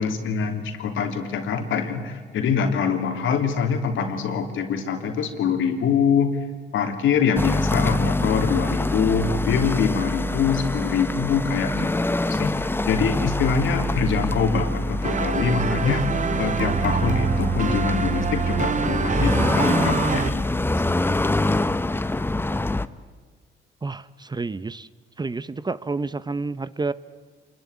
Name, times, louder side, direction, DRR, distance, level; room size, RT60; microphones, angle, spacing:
voice 1, 0.0-6.4 6.7-20.4 21.0-21.2, left 6 dB, 80° left, 5 dB, 3.2 m, -24 dB
sound 1, 7.4-22.9, left 2 dB, 10° left, 0.8 m, -25 dB
sound 2, 15.0-20.3, right 6 dB, 40° right, 1.1 m, -25 dB
voice 2, 23.8-24.9 25.2-26.9, right 3 dB, 20° right, 16 dB, 0.8 m, -29 dB
27.0 x 21.5 x 9.6 m, 1.5 s
cardioid pair, 90°, 20 cm